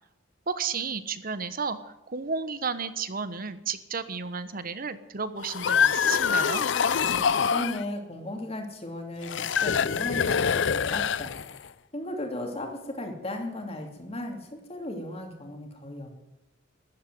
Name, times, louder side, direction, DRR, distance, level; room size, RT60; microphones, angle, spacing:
voice 1, 0.5-1.8 2.1-6.6, right 5 dB, 50° right, 13 dB, 1.1 m, -32 dB
sound 1, 5.4-7.8 9.2-11.7, left 7 dB, 70° left, 0.5 m, -25 dB
voice 2, 6.9-11.3 11.9-16.1, left 1 dB, 30° left, 3 dB, 2.8 m, -36 dB
14.0 x 11.0 x 9.2 m, 0.96 s
head